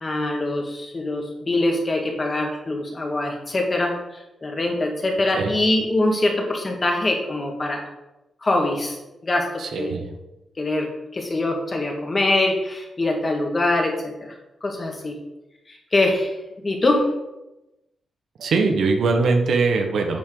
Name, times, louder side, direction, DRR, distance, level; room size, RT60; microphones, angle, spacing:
voice 1, 0.0-3.9 4.4-7.8 8.4-9.9 10.6-14.3 14.6-15.2 15.7-16.4 16.6-17.0, left 2 dB, 25° left, 1 dB, 1.9 m, -23 dB
voice 2, 9.6-10.0 18.4-20.2, right 4 dB, 70° right, 4 dB, 1.3 m, -21 dB
10.5 x 7.3 x 3.9 m, 0.96 s
wide cardioid pair, 150°, 0 cm